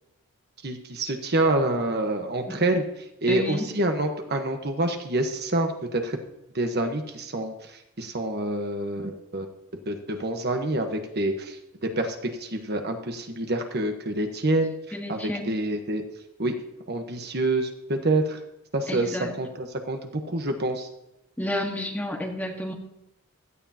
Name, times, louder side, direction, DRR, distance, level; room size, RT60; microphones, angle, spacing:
voice 1, 0.6-2.8 3.2-6.2 6.5-7.5 8.0-9.5 9.9-11.6 11.8-14.7 15.1-16.0 16.4-16.6 16.9-18.4 18.7-20.9, right 2 dB, 45° right, 5 dB, 1.2 m, -27 dB
voice 2, 3.3-3.7 14.9-15.5 18.9-19.3 21.4-22.7, left 1 dB, 5° left, 0 dB, 1.6 m, -31 dB
16.5 x 13.0 x 2.9 m, 0.88 s
head